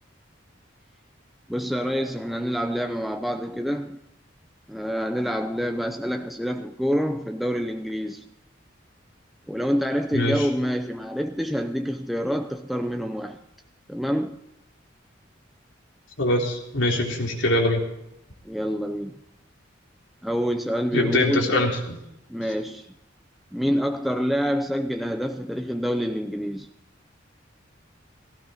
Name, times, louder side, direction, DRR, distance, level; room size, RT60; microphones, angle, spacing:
voice 1, 1.5-4.0 4.7-8.2 9.5-13.4 13.9-14.4 18.4-19.2 20.2-21.6 22.3-22.9 23.5-26.7, equal, ahead, 0.7 m, -27 dB
voice 2, 16.2-17.8 20.9-22.0, left 1 dB, 85° left, 3.7 m, -23 dB
17.5 x 16.0 x 4.3 m
head